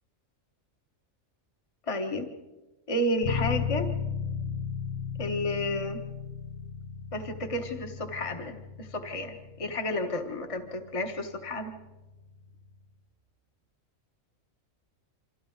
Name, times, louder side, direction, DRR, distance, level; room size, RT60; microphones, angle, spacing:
voice 1, 1.9-2.3 2.9-3.9 5.2-6.0 7.1-11.7, left 1 dB, 25° left, 5 dB, 1.4 m, -31 dB
Bass guitar, 3.2-12.9, left 6 dB, 80° left, 1.6 m, -36 dB
28.0 x 25.5 x 3.9 m, 1.1 s
omnidirectional pair, 1.4 m